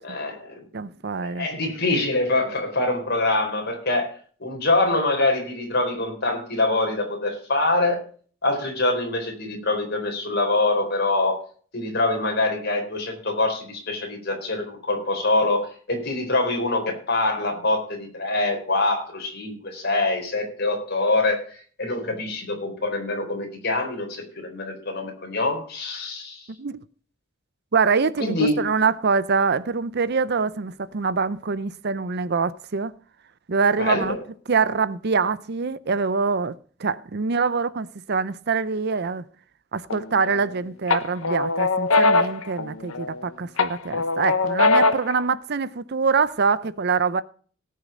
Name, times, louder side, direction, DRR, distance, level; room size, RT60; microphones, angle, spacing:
voice 1, 0.0-0.6 1.2-4.1 4.4-8.0 8.4-11.4 11.7-26.5 28.2-28.7 33.8-34.2, left 2 dB, 50° left, 4.2 m, -24 dB
voice 2, 0.7-1.5 26.6-26.8 27.7-32.9 33.5-34.2 34.5-36.5 36.8-39.2 39.7-47.2, right 5 dB, 50° right, 0.6 m, -24 dB
sound 1, 39.9-40.5 40.9-43.2 43.6-45.2, left 3 dB, 85° left, 1.0 m, -21 dB
18.0 x 6.6 x 5.0 m
head